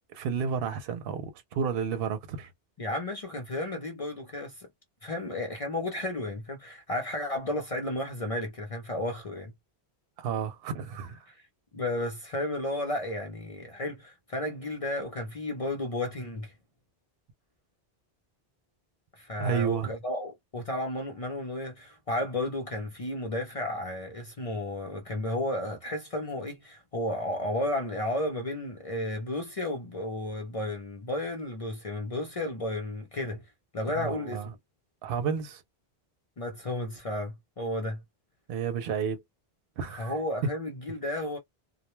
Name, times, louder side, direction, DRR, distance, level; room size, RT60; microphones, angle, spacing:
voice 1, 0.1-2.5 10.2-11.3 19.4-19.9 33.9-34.5 35.0-35.6 38.5-39.2 39.8-40.2, right 6 dB, 65° right, 0.7 m, -31 dB
voice 2, 2.8-4.7 5.0-9.5 11.3-11.4 11.7-16.6 19.2-33.4 33.7-34.4 36.4-38.0 40.0-41.4, left 1 dB, 40° left, 0.6 m, -33 dB
2.1 x 2.1 x 3.0 m
omnidirectional pair, 1.1 m